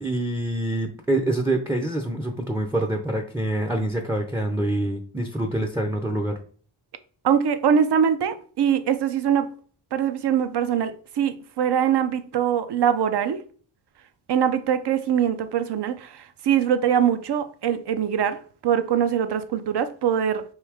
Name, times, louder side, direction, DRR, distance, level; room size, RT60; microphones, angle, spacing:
voice 1, 0.0-6.4, right 1 dB, 5° right, 0.5 m, -26 dB
voice 2, 7.2-9.5 9.9-13.4 14.3-20.4, right 8 dB, 60° right, 0.6 m, -23 dB
4.7 x 2.7 x 3.4 m
wide cardioid pair, 85°, 47 cm